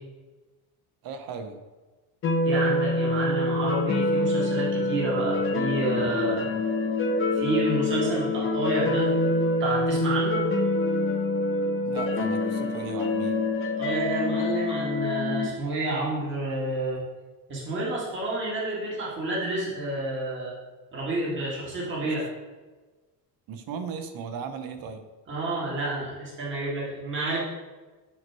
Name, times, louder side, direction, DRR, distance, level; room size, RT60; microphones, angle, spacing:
voice 1, 1.0-1.6 11.8-13.5 22.0-22.1 23.5-25.0, right 6 dB, 60° right, 7 dB, 0.8 m, -36 dB
sound 1, 2.2-15.5, left 2 dB, 30° left, 0.7 m, -26 dB
voice 2, 2.4-6.5 7.3-9.1 9.6-10.4 13.8-17.0 17.5-20.5 20.9-22.3 25.3-27.4, right 2 dB, 30° right, -5 dB, 1.8 m, -29 dB
8.7 x 3.1 x 4.5 m, 1.2 s
cardioid pair, 150°, 40 cm